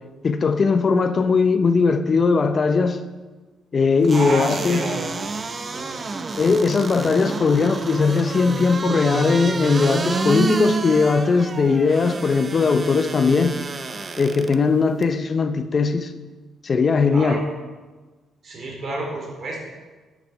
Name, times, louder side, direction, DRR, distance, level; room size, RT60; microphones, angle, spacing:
voice 1, 0.2-3.0 3.7-4.8 6.4-13.6 14.2-16.1 16.6-17.4, left 4 dB, 40° left, 10 dB, 0.6 m, -19 dB
sound 1, 4.0-14.6 15.0-15.1, right 4 dB, 35° right, 0.7 m, -29 dB
voice 2, 4.1-5.1 5.6-6.2 17.1-17.5 18.4-19.7, right 2 dB, 55° right, 0 dB, 3.4 m, -30 dB
10.0 x 8.5 x 4.6 m, 1.3 s
cardioid pair, 90°, 0 cm